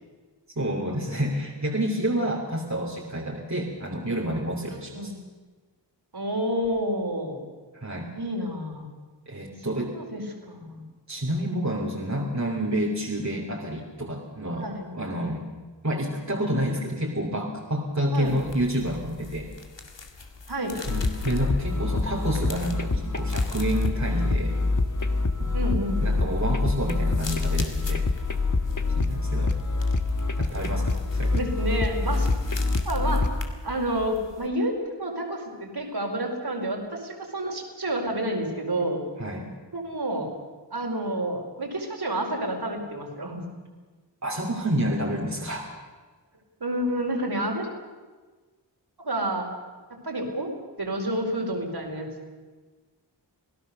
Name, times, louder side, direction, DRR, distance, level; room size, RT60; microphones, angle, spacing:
voice 1, 0.6-5.1 7.7-8.1 9.3-9.9 11.1-15.5 15.8-19.5 20.9-24.5 25.4-25.5 26.0-28.1 29.0-29.6 30.4-31.4 39.2-39.5 44.2-45.8, right 1 dB, 40° right, -2 dB, 3.0 m, -29 dB
voice 2, 4.7-5.1 6.1-7.4 8.1-8.9 9.7-10.8 14.6-14.9 18.1-18.4 20.5-20.8 25.5-26.3 31.3-32.3 32.8-33.3 33.6-39.0 39.7-40.3 40.7-43.4 46.6-47.7 49.0-49.5 49.9-50.5 50.8-52.1, right 1 dB, 60° right, 2 dB, 4.8 m, -29 dB
sound 1, 18.2-34.5, left 3 dB, 80° left, 2.3 m, -39 dB
sound 2, 20.9-33.5, left 3 dB, 45° left, 1.4 m, -26 dB
27.0 x 17.5 x 6.8 m, 1.4 s
wide cardioid pair, 55°, 43 cm